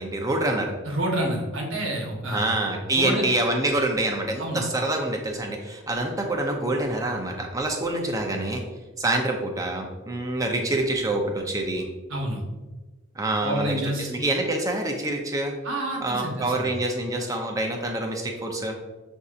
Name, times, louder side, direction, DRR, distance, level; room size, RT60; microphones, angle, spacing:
voice 1, 0.0-0.7 2.2-8.6 9.0-11.9 13.2-15.5 16.0-18.8, right 2 dB, 15° right, 2 dB, 0.5 m, -26 dB
voice 2, 0.8-2.5 3.0-3.2 4.4-4.6 12.1-12.4 13.4-14.1 15.6-16.7, right 1 dB, 75° right, 0 dB, 1.0 m, -28 dB
6.5 x 2.7 x 2.4 m, 1.2 s
head